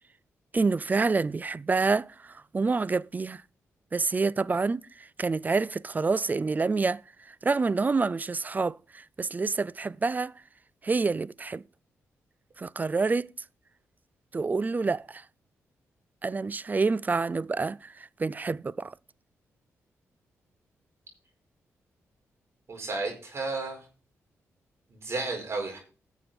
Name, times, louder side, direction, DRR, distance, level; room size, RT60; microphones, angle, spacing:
voice 1, 0.5-3.4 3.9-7.0 7.4-10.3 10.8-11.6 12.6-13.3 14.3-15.2 16.2-18.9, right 4 dB, 30° right, 0.4 m, -27 dB
voice 2, 22.7-23.9 24.9-25.8, right 3 dB, 50° right, 4.9 m, -33 dB
11.5 x 7.1 x 4.3 m
cardioid pair, 60°, 6 cm